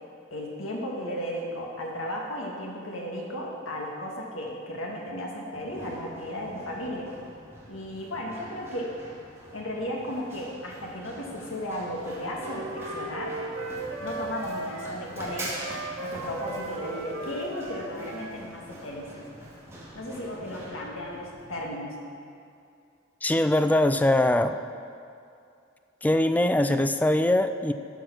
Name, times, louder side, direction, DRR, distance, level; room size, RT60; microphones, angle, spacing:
voice 1, 0.3-7.1 7.7-8.9 9.5-13.4 14.0-15.5 16.0-19.2 19.9-22.0, left 1 dB, 85° left, -2 dB, 1.8 m, -35 dB
Run, 5.5-21.6, right 1 dB, 15° right, 2.1 m, -44 dB
Wind instrument woodwind instrument, 12.0-18.4, right 2 dB, 85° right, 1.2 m, -37 dB
voice 2, 23.2-24.6 26.0-27.7, left 1 dB, 10° left, 9 dB, 0.3 m, -22 dB
12.5 x 6.7 x 6.2 m, 2.5 s
head